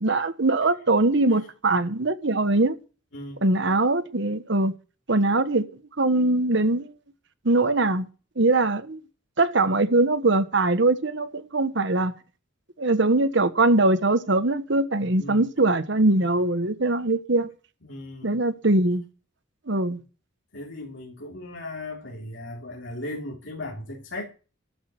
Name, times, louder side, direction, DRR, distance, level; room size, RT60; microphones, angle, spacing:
voice 1, 0.0-2.7 3.4-4.7 5.1-5.7 6.0-6.8 7.4-8.1 8.4-9.0 9.4-12.1 12.8-17.5 18.2-19.0 19.7-20.0, right 2 dB, 60° right, 1.2 m, -22 dB
voice 2, 3.1-3.4 15.2-15.5 17.8-18.4 20.5-24.2, left 1 dB, 65° left, 3.1 m, -37 dB
13.5 x 6.3 x 9.3 m
head